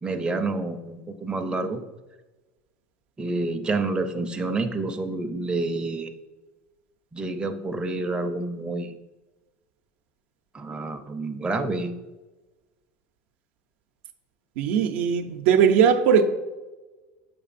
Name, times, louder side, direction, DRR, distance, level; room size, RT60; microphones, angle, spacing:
voice 1, 0.0-1.8 3.2-6.1 7.1-8.9 10.5-11.9, right 3 dB, 15° right, 0.5 m, -28 dB
voice 2, 14.6-16.2, right 7 dB, 75° right, 0.6 m, -19 dB
6.5 x 6.0 x 2.5 m
supercardioid pair, 100°, 6 cm